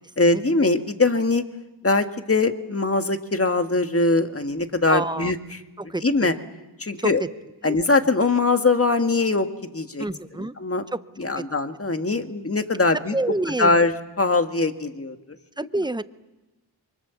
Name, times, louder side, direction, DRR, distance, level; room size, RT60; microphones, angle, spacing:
voice 1, 0.2-1.4 1.8-5.4 6.0-6.3 6.8-7.2 7.6-9.5 9.7-10.1 10.4-10.8 11.2-13.2 13.6-15.2, left 3 dB, 30° left, 7 dB, 1.7 m, -22 dB
voice 2, 4.9-5.3 5.8-6.4 7.0-7.1 7.6-7.8 10.0-10.5 11.4-11.5 13.1-13.9 15.6-16.0, right 2 dB, 10° right, 13 dB, 0.8 m, -27 dB
27.0 x 24.0 x 7.1 m, 1.1 s
wide cardioid pair, 60°, 42 cm